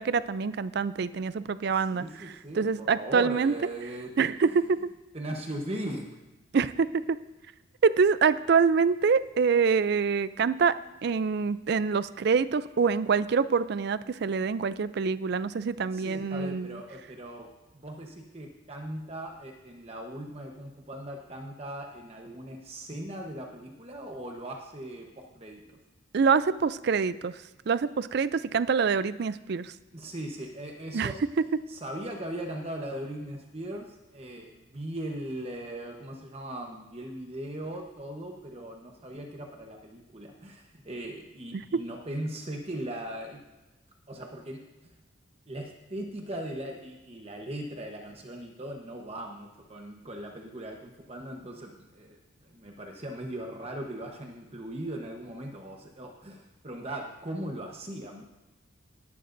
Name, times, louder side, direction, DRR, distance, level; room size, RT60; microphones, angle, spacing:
voice 1, 0.0-2.0 2.6-3.5 4.2-4.9 6.5-7.2 7.8-10.8 11.0-16.8 26.1-27.4 27.7-29.7 30.9-31.1 41.5-41.8, right 5 dB, 50° right, 15 dB, 0.4 m, -25 dB
voice 2, 1.7-4.1 5.1-6.2 15.9-17.5 17.8-25.8 29.9-31.2 31.7-43.4 44.1-44.9 45.5-58.2, right 1 dB, 30° right, 1 dB, 1.0 m, -39 dB
18.5 x 11.0 x 2.6 m, 1.1 s
head